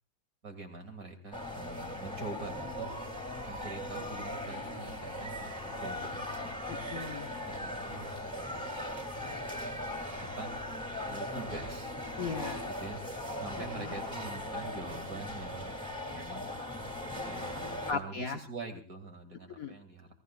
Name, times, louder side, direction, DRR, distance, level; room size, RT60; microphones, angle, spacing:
voice 1, 0.4-2.9 3.5-5.5 5.8-6.5 7.5-8.7 10.2-10.5 11.1-11.9 12.8-13.0 13.4-15.8 16.1-16.6 17.2-20.1, right 3 dB, 45° right, 4 dB, 3.0 m, -44 dB
sound 1, 1.3-17.9, left 1 dB, ahead, 2.7 m, -39 dB
voice 2, 6.7-7.3 12.2-12.6 13.8-14.0 17.9-18.4 19.6-19.7, left 5 dB, 50° left, 3 dB, 1.4 m, -37 dB
28.5 x 17.5 x 2.4 m, 0.36 s
omnidirectional pair, 2.1 m